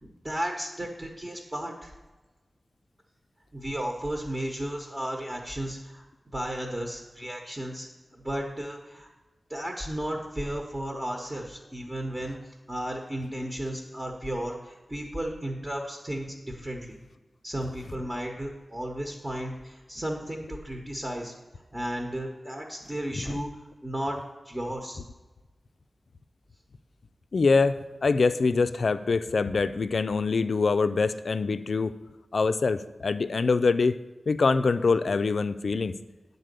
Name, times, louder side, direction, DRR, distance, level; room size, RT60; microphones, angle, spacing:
voice 1, 0.0-1.9 3.5-6.1 6.3-9.1 9.5-12.4 12.7-17.0 17.4-21.3 21.7-23.5 23.8-24.2 24.4-25.0, right 1 dB, 20° right, 1 dB, 1.0 m, -34 dB
voice 2, 27.3-31.9 32.3-34.0 34.3-36.0, left 4 dB, 70° left, 12 dB, 0.3 m, -24 dB
9.0 x 4.0 x 6.7 m, 1.2 s
wide cardioid pair, 100°, 0 cm